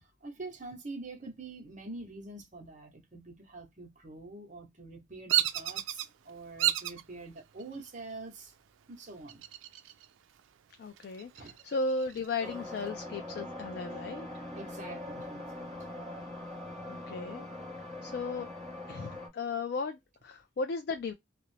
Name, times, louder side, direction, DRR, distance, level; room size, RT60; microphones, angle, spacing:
voice 1, 0.0-8.5 8.9-9.4 11.4-11.6 14.5-15.7, right 2 dB, 40° right, 0.8 m, -45 dB
Bird vocalization bird call bird song, 5.3-6.1 6.6-7.0 7.6-8.1 9.3-10.0 10.4-10.5 11.0-12.4, right 13 dB, 80° right, 0.3 m, -31 dB
voice 2, 10.8-14.3 16.9-17.5 18.0-18.5 18.9-21.1, left 3 dB, 55° left, 0.3 m, -35 dB
sound 1, 12.4-19.3, left 1 dB, ahead, 0.8 m, -42 dB
2.4 x 2.0 x 3.1 m
head